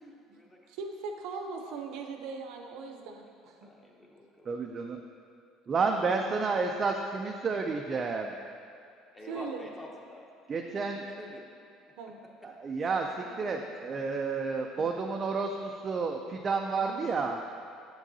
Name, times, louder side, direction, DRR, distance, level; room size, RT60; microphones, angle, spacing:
voice 1, 0.0-0.6 3.6-4.5 9.1-10.2 11.2-11.5, left 1 dB, 10° left, -2 dB, 0.7 m, -47 dB
voice 2, 0.7-3.7 9.3-9.7 12.0-12.2 14.8-14.9 16.8-17.1, right 4 dB, 70° right, 3 dB, 0.7 m, -40 dB
voice 3, 4.4-5.0 5.7-8.3 10.5-11.0 12.4-17.4, right 4 dB, 25° right, 2 dB, 0.3 m, -31 dB
7.4 x 7.3 x 2.7 m, 2.3 s
cardioid pair, 165°, 0 cm